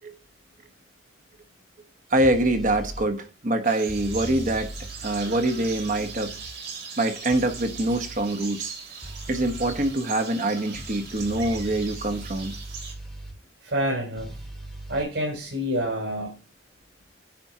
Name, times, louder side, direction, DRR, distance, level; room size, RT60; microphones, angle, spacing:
voice 1, 2.1-4.7 5.0-6.3 7.0-8.7 9.3-12.5, right 1 dB, 45° right, 1.3 m, -25 dB
sound 1, 2.2-3.1 3.9-6.5 7.3-8.2 9.0-9.9 10.7-13.4 14.2-15.0, right 1 dB, ahead, 3.2 m, -39 dB
sound 2, 3.6-12.9, right 5 dB, 65° right, 3.6 m, -40 dB
voice 2, 13.6-14.4 14.9-16.4, equal, 85° right, 3.6 m, -28 dB
10.0 x 4.4 x 6.1 m
head